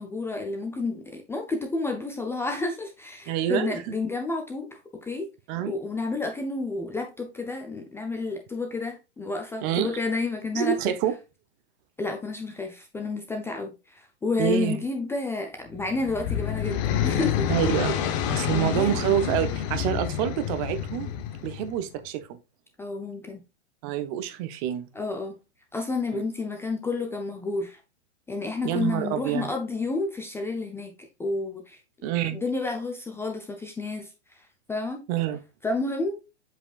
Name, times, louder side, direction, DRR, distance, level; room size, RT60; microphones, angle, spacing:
voice 1, 0.0-4.7 4.9-5.3 5.6-11.0 12.0-17.5 18.5-19.0 22.8-23.4 24.9-25.4 25.7-27.8 28.3-30.9 31.2-31.8 32.2-34.4 34.7-35.0 35.6-36.2, left 3 dB, 5° left, 0.5 m, -30 dB
voice 2, 3.3-3.9 5.5-5.7 9.6-9.9 10.5-11.2 14.4-14.8 17.5-17.9 18.3-21.1 21.4-22.4 23.8-24.9 26.1-26.2 28.6-29.5 32.0-32.4 35.1-35.4, right 10 dB, 35° right, 0.8 m, -27 dB
sound 1, 15.7-21.8, left 9 dB, 35° left, 0.9 m, -28 dB
7.4 x 5.3 x 2.4 m
hypercardioid pair, 130°, 35 cm